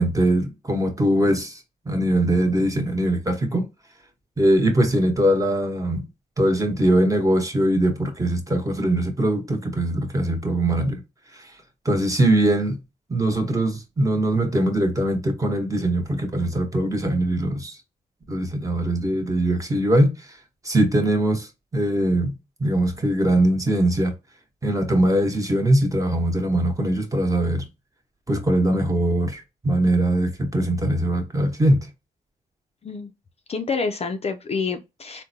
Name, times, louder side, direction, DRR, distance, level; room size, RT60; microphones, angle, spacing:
voice 1, 0.0-1.6 1.8-3.7 4.4-6.1 6.4-11.0 11.4-11.5 11.8-12.8 13.1-17.8 18.3-20.3 20.6-22.3 22.6-24.1 24.6-27.7 28.3-31.9, right 1 dB, 20° right, 1.0 m, -21 dB
voice 2, 33.5-35.2, left 4 dB, 40° left, 0.4 m, -28 dB
3.7 x 2.1 x 2.7 m
cardioid pair, 70°, 16 cm